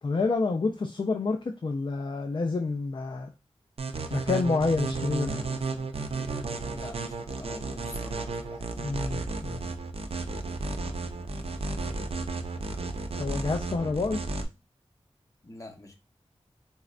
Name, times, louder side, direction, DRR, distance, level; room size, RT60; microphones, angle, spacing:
voice 1, 0.0-3.3 4.1-5.5 8.8-9.7 13.2-14.2, left 3 dB, 45° left, 5 dB, 0.4 m, -28 dB
sound 1, 3.8-14.4, right 3 dB, 60° right, 0.4 m, -33 dB
voice 2, 6.7-8.7 15.4-16.0, left 2 dB, 30° left, 2 dB, 0.8 m, -45 dB
4.2 x 2.1 x 2.4 m, 0.25 s
wide cardioid pair, 85°, 11 cm